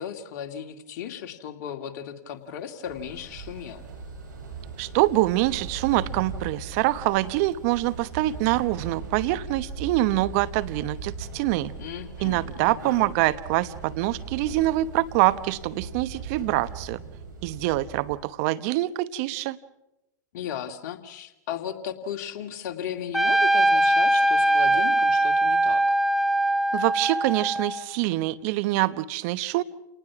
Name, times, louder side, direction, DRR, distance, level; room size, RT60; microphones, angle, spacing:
voice 1, 0.0-3.8 11.8-13.1 20.3-25.8, left 9 dB, 55° left, 5 dB, 2.5 m, -36 dB
sound 1, 2.8-18.1, right 4 dB, 70° right, 7.1 m, -39 dB
voice 2, 4.8-11.7 12.2-17.0 17.4-19.6 26.7-29.6, right 17 dB, 50° right, 14 dB, 1.0 m, -25 dB
Trumpet, 23.1-27.9, right 1 dB, ahead, 1.2 m, -21 dB
29.5 x 19.0 x 6.1 m, 0.91 s
hypercardioid pair, 110°, 10 cm